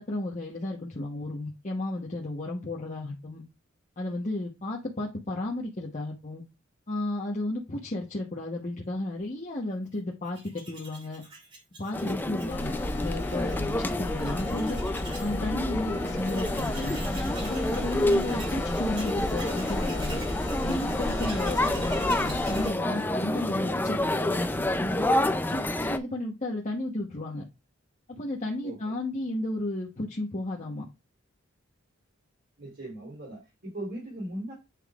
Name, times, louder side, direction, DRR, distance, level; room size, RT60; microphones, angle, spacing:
voice 1, 0.0-3.4 4.0-6.4 6.9-11.2 11.8-12.7 13.0-14.8 15.2-17.0 17.4-20.2 20.6-25.0 25.5-27.4 28.1-30.8, left 1 dB, 35° left, 1.0 m, -33 dB
Tools, 10.3-15.4 15.7-15.8 16.0-23.6, right 2 dB, 25° right, 2.3 m, -45 dB
sound 1, 11.9-26.0, left 1 dB, 10° left, 0.4 m, -29 dB
sound 2, 12.5-22.7, left 2 dB, 55° left, 1.6 m, -34 dB
voice 2, 28.6-29.0 32.6-34.5, right 1 dB, 50° right, 3.3 m, -39 dB
8.4 x 5.5 x 2.4 m
head